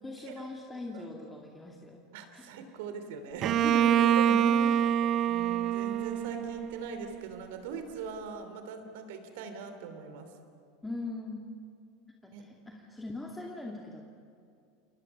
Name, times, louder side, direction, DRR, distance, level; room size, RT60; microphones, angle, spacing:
voice 1, 0.0-2.1 2.3-2.5 3.6-5.0 10.8-11.4 12.2-14.0, left 2 dB, 10° left, 0 dB, 2.3 m, -40 dB
voice 2, 2.1-3.5 5.3-10.3 12.3-12.5, right 5 dB, 55° right, 8 dB, 3.0 m, -41 dB
Bowed string instrument, 3.4-7.2, right 10 dB, 40° right, 0.8 m, -26 dB
30.0 x 28.5 x 5.5 m, 2.4 s
figure-of-eight pair, 80°, 0 cm